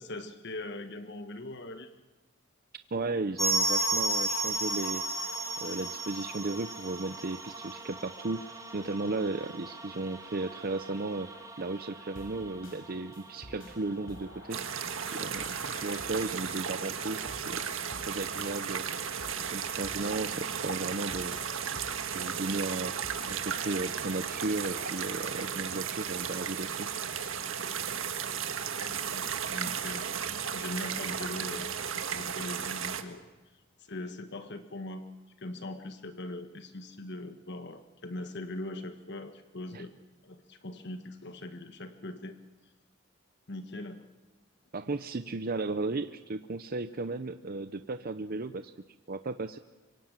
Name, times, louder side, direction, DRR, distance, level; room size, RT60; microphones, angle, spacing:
voice 1, 0.0-1.9 28.9-30.1 30.5-31.7 32.1-33.2 33.8-35.1 35.4-39.9 40.2-42.4 43.5-44.0, left 1 dB, 60° left, 8 dB, 1.5 m, -41 dB
voice 2, 2.9-5.1 5.6-11.3 11.6-14.7 15.1-17.6 18.1-18.9 19.5-21.4 22.1-22.9 23.3-27.0 39.7-39.8 44.7-48.7 49.1-49.6, right 3 dB, 50° right, 10 dB, 0.7 m, -35 dB
sound 1, 3.4-13.9 14.2-14.3 14.5-14.6 15.2-15.3, right 2 dB, 15° right, 2.9 m, -35 dB
sound 2, 12.2-26.0, left 1 dB, 80° left, 6.2 m, -49 dB
sound 3, 14.5-33.0, right 7 dB, 80° right, 1.7 m, -35 dB
25.5 x 24.0 x 7.5 m, 1.2 s
head